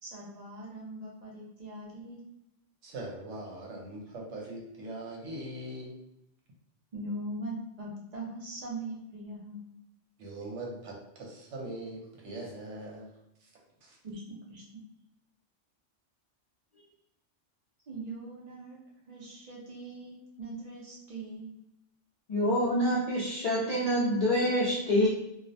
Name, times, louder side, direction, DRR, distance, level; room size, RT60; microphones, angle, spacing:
voice 1, 0.0-2.2 6.9-9.7 14.0-14.8 17.9-18.8 19.1-21.5, right 1 dB, 45° right, -4 dB, 0.5 m, -41 dB
voice 2, 2.8-6.0 10.2-13.1 13.8-14.0, right 1 dB, 75° right, -2 dB, 1.0 m, -41 dB
voice 3, 22.3-25.1, equal, 55° left, -7 dB, 0.4 m, -26 dB
2.4 x 2.0 x 2.6 m, 0.84 s
omnidirectional pair, 1.2 m